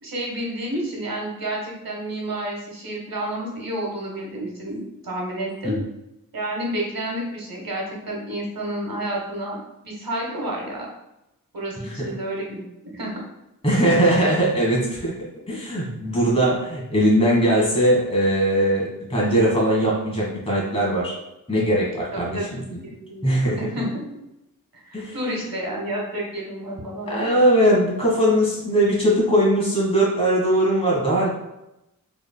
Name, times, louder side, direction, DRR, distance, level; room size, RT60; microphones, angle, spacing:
voice 1, 0.0-5.8 6.3-10.9 11.5-13.2 15.5-15.8 22.1-24.0 24.7-27.3, right 1 dB, 75° right, -2 dB, 1.3 m, -30 dB
voice 2, 11.8-12.1 13.6-21.1 21.5-22.5 23.2-23.7 24.9-25.2 27.1-31.3, right 1 dB, 15° left, -5 dB, 1.5 m, -20 dB
4.6 x 3.5 x 2.2 m, 0.91 s
wide cardioid pair, 55°, 36 cm